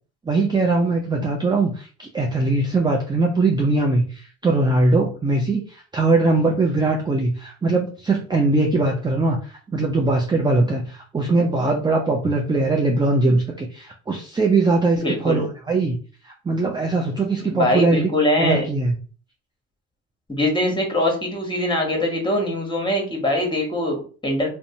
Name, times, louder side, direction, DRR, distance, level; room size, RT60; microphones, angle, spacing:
voice 1, 0.3-16.0 16.5-18.1 18.4-18.9, right 3 dB, 15° right, 1 dB, 0.4 m, -21 dB
voice 2, 15.0-15.5 17.4-18.6 20.3-24.5, left 1 dB, 15° left, 1 dB, 1.2 m, -22 dB
2.6 x 2.2 x 2.7 m, 0.39 s
hypercardioid pair, 60°, 33 cm